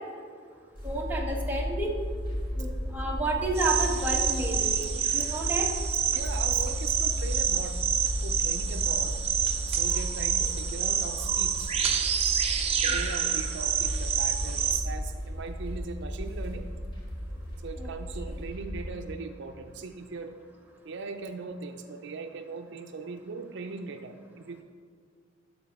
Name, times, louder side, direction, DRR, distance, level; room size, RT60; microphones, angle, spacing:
sound 1, 0.7-18.9, equal, 25° left, 1.8 m, -34 dB
voice 1, 0.8-1.9 2.6-2.7 2.9-4.9 5.1-5.7 10.4-10.5 12.9-13.3 17.8-17.9, right 2 dB, 10° right, -2 dB, 1.2 m, -31 dB
sound 2, 3.6-14.8, right 8 dB, 30° right, 0.7 m, -28 dB
voice 2, 6.1-7.8 8.2-9.2 9.7-11.7 12.8-16.7 17.6-20.4 20.8-24.6, right 4 dB, 65° right, 7 dB, 0.5 m, -39 dB
12.5 x 4.2 x 4.6 m, 2.1 s
head